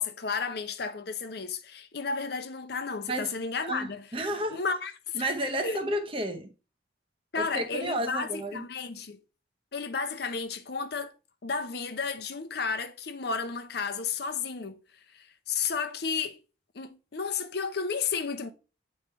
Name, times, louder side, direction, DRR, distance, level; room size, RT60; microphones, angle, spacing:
voice 1, 0.0-4.0 4.5-5.2 5.6-5.8 7.3-9.2 9.7-11.1 11.4-14.8 15.1-16.4 16.7-18.5, left 5 dB, 55° left, 0.6 m, -32 dB
voice 2, 3.6-4.6 5.1-6.5 7.4-8.6, right 1 dB, 30° right, 0.8 m, -31 dB
8.3 x 3.2 x 4.5 m
head